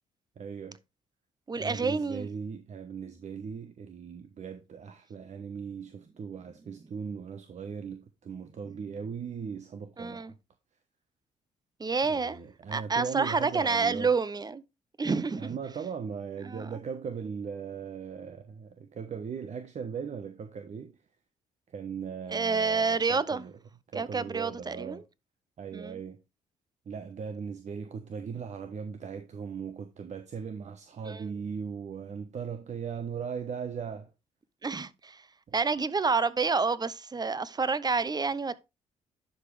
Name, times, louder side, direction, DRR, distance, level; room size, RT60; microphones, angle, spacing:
voice 1, 0.4-0.8 1.6-10.4 12.0-14.1 15.4-21.0 21.7-23.5 23.9-25.0 25.6-26.2 26.9-34.1, right 6 dB, 55° right, 1.1 m, -38 dB
voice 2, 1.5-2.3 10.0-10.3 11.8-12.4 12.7-14.6 15.0-15.6 16.4-16.8 22.3-23.4 23.9-25.0 25.7-26.0 31.1-31.3 34.6-35.3 35.5-38.6, right 4 dB, 25° right, 0.8 m, -29 dB
11.0 x 5.1 x 3.3 m
supercardioid pair, 55°, 15 cm